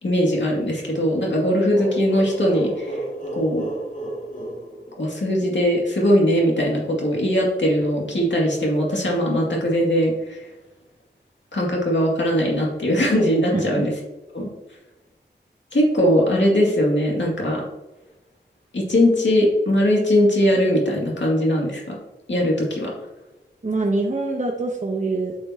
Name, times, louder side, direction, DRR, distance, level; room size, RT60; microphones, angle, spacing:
voice 1, 0.0-3.0 3.4-3.7 5.0-10.4 11.5-13.9 14.3-14.5 15.7-17.6 18.7-22.0 22.3-22.9, equal, 85° left, -2 dB, 2.3 m, -20 dB
sound 1, 1.7-5.4, right 1 dB, 45° left, 2.1 m, -32 dB
voice 2, 13.5-13.8 23.6-25.4, right 2 dB, 40° right, 0 dB, 1.0 m, -24 dB
8.7 x 6.9 x 2.9 m, 1.0 s
wide cardioid pair, 75°, 19 cm